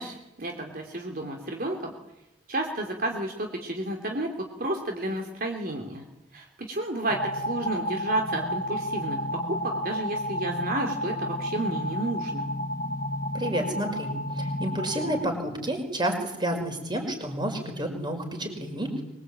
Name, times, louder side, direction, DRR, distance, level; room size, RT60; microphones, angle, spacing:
voice 1, 0.0-1.9 2.5-4.3 4.6-6.0 6.3-9.2 9.6-12.5, right 1 dB, 50° right, 2 dB, 3.2 m, -31 dB
sound 1, 7.1-15.2, equal, 30° left, 1.7 m, -31 dB
voice 2, 13.3-19.0, right 1 dB, 25° right, 4 dB, 5.8 m, -30 dB
24.5 x 23.5 x 9.0 m, 0.91 s
head